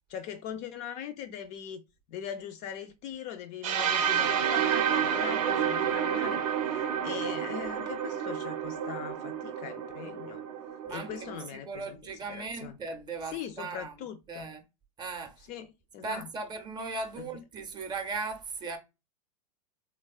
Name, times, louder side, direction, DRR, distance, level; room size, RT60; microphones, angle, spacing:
voice 1, 0.1-1.8 2.1-10.4 10.9-12.0 12.3-12.8 13.3-14.5 15.4-16.3 17.2-17.3, left 9 dB, 35° left, 0.4 m, -41 dB
sound 1, 3.6-11.5, right 8 dB, 65° right, 0.6 m, -30 dB
voice 2, 10.8-14.6 15.0-15.3 16.0-18.8, right 4 dB, 20° right, 0.6 m, -38 dB
3.3 x 2.0 x 2.3 m
hypercardioid pair, 105°, 20 cm